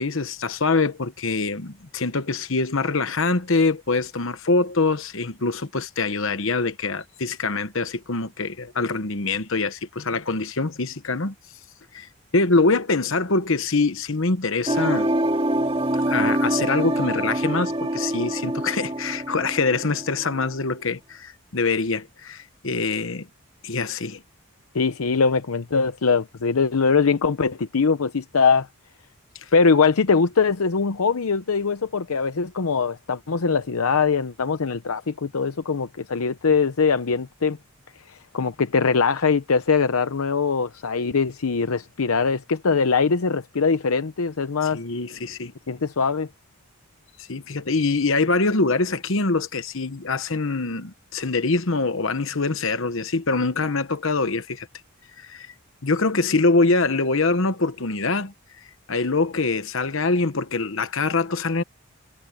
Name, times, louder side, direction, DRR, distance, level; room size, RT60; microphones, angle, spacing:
voice 1, 0.0-11.3 11.9-12.1 12.3-15.1 16.1-23.3 23.6-24.2 44.7-45.5 47.2-54.7 55.2-55.5 55.8-58.3 58.9-61.6, left 3 dB, 65° left, 1.1 m, -24 dB
sound 1, 14.7-20.5, right 1 dB, 25° right, 2.5 m, -25 dB
voice 2, 24.7-28.7 29.5-37.6 38.1-44.8 45.7-46.3, left 5 dB, 85° left, 0.7 m, -22 dB
head